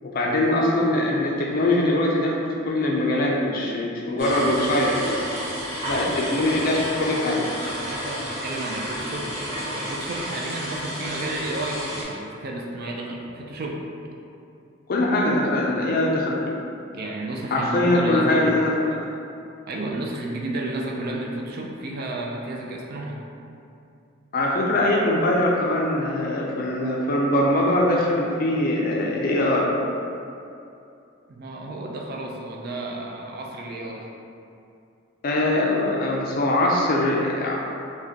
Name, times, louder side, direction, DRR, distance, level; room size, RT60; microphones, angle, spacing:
voice 1, 0.0-2.4 2.7-4.9 5.9-7.4 14.9-16.4 17.5-18.9 24.3-29.7 35.2-37.6, left 1 dB, 45° left, -2 dB, 0.4 m, -22 dB
sound 1, 4.2-12.0, equal, 30° right, 1.1 m, -31 dB
voice 2, 7.7-9.3 9.7-13.8 16.9-18.6 19.7-23.2 31.3-34.1, right 2 dB, 50° right, -1 dB, 0.4 m, -32 dB
4.8 x 2.2 x 2.8 m, 2.6 s
head